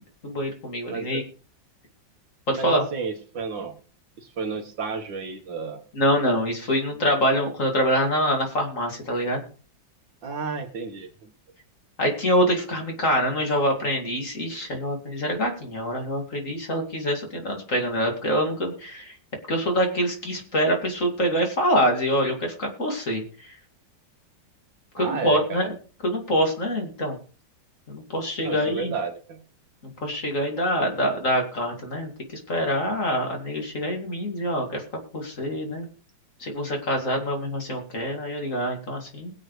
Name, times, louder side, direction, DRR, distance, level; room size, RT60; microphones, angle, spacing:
voice 1, 0.2-1.2 2.5-2.8 6.0-9.4 12.0-19.1 19.5-23.2 24.9-25.7 26.0-27.2 27.9-28.9 30.0-32.1 32.5-34.8 35.1-35.9 36.4-39.3, equal, 40° left, 2 dB, 2.8 m, -25 dB
voice 2, 0.9-1.3 2.5-3.8 4.2-5.8 10.2-11.3 25.0-25.7 28.4-29.4, right 5 dB, 75° right, 3 dB, 2.2 m, -32 dB
21.5 x 7.9 x 3.3 m, 0.38 s
omnidirectional pair, 2.1 m